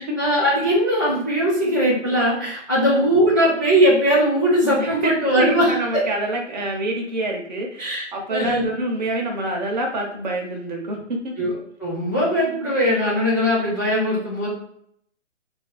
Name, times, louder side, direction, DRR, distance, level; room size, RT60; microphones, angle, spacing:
voice 1, 0.0-6.0 7.8-8.7 11.4-11.5 11.8-14.5, equal, 15° left, -9 dB, 0.4 m, -20 dB
voice 2, 4.8-5.1 5.4-11.3, right 1 dB, 35° right, 1 dB, 0.8 m, -27 dB
3.1 x 2.6 x 3.8 m, 0.70 s
hypercardioid pair, 155°, 38 cm